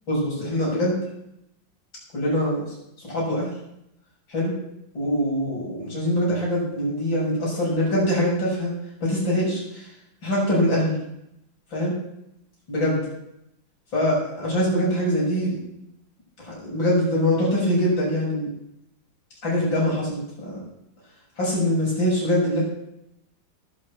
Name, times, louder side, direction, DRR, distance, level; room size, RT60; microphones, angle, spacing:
voice 1, 0.1-1.0 2.1-2.6 3.0-3.5 4.3-4.5 4.9-8.7 9.0-9.9 10.2-11.0 11.7-11.9 12.7-13.0 13.9-15.6 16.4-18.5 19.4-20.6 21.4-22.6, equal, 80° left, -5 dB, 7.5 m, -23 dB
19.5 x 6.8 x 7.6 m, 0.80 s
omnidirectional pair, 2.0 m